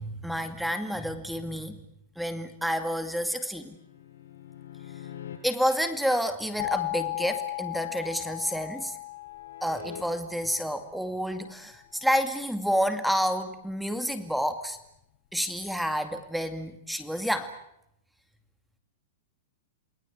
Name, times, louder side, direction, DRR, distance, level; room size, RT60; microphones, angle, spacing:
voice 1, 0.0-1.9 2.2-3.8 5.4-8.9 9.6-14.8 15.3-17.5, equal, ahead, 8 dB, 2.3 m, -29 dB
sound 1, 3.6-5.4 8.1-10.0 13.5-13.7, left 10 dB, 85° left, 6.8 m, -45 dB
sound 2, 6.6-11.3, left 19 dB, 55° left, 1.4 m, -36 dB
28.5 x 20.5 x 8.5 m, 0.79 s
hypercardioid pair, 145°, 0 cm